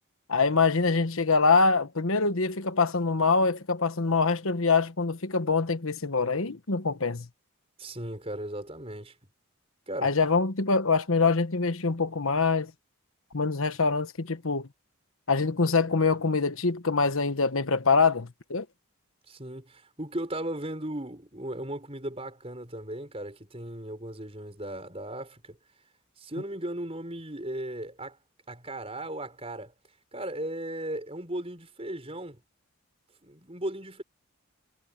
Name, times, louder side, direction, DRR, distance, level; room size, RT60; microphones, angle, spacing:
voice 1, 0.3-7.3 10.0-12.7 13.3-14.7 15.3-18.6, left 4 dB, 70° left, 1.2 m, -24 dB
voice 2, 7.8-9.1 9.9-10.2 19.3-25.6 26.2-28.2 28.5-29.7 30.1-32.4 33.2-34.0, right 1 dB, 25° right, 5.8 m, -36 dB
head